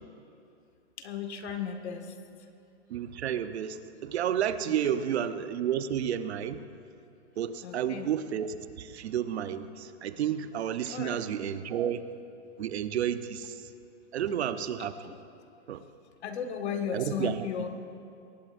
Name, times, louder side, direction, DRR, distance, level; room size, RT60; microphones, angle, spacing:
voice 1, 1.0-2.1 4.7-4.8 5.1-5.2 7.6-8.1 10.9-11.2 15.0-15.2 16.2-17.7, left 7 dB, 65° left, 5 dB, 1.9 m, -35 dB
voice 2, 2.9-6.6 7.4-12.0 12.6-13.6 14.1-15.1 15.7-15.8 16.9-17.5, right 9 dB, 65° right, 10 dB, 0.9 m, -31 dB
22.5 x 19.0 x 2.6 m, 2.6 s
hypercardioid pair, 155°, 35 cm